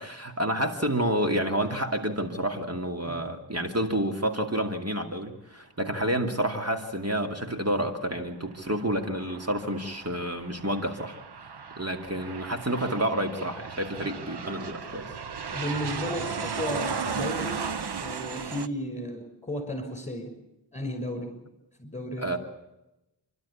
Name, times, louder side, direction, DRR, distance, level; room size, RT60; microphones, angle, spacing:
voice 1, 0.0-11.2 11.8-15.1 22.2-22.4, right 1 dB, 35° right, 4 dB, 2.5 m, -29 dB
Aircraft, 8.5-18.7, right 5 dB, 60° right, 0.9 m, -36 dB
voice 2, 15.5-17.7 18.0-20.3 20.7-21.3 21.8-22.4, left 1 dB, 15° left, 6 dB, 6.0 m, -34 dB
28.5 x 12.5 x 8.5 m, 0.92 s
wide cardioid pair, 60°, 44 cm